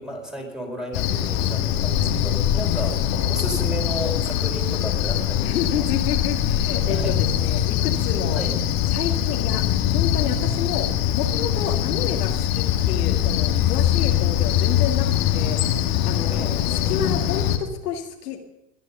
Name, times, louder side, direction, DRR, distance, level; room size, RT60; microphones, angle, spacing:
voice 1, 0.0-5.9 6.9-7.2 8.3-8.6 16.3-16.9, equal, ahead, 1 dB, 4.2 m, -33 dB
Cricket, 0.9-17.6, left 11 dB, 45° left, 1.8 m, -22 dB
voice 2, 1.1-1.6 2.6-3.1 5.4-8.4 8.9-9.6 9.9-15.1 15.3-18.4, left 8 dB, 70° left, 3 dB, 2.3 m, -30 dB
21.0 x 10.5 x 5.6 m, 0.90 s
hypercardioid pair, 100°, 48 cm